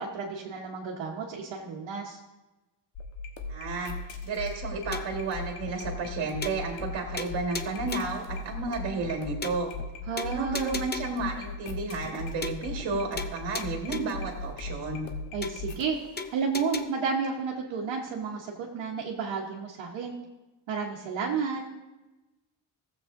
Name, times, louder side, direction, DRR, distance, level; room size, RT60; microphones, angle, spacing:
voice 1, 0.0-2.2 10.1-10.8 15.3-16.0 16.3-20.2 20.7-21.6, right 5 dB, 90° right, -3 dB, 1.1 m, -31 dB
sound 1, 3.0-16.3 16.8-17.2 17.5-17.6, left 3 dB, 80° left, 1.3 m, -38 dB
voice 2, 3.5-9.7 10.2-15.1, right 3 dB, 65° right, 0 dB, 1.8 m, -32 dB
sound 2, 4.9-5.3 5.7-5.8 6.0-6.1 6.4-6.9 7.2-8.2 8.7-8.8 9.0-9.1 9.4-9.9 10.2-11.2 11.7-11.8 12.0-12.2 12.4-12.9 13.2-14.2 14.7-14.8 15.0-15.1 15.4-15.9 16.2-16.8, left 4 dB, 25° left, 0.5 m, -37 dB
15.5 x 7.6 x 2.6 m, 1.1 s
cardioid pair, 105°, 46 cm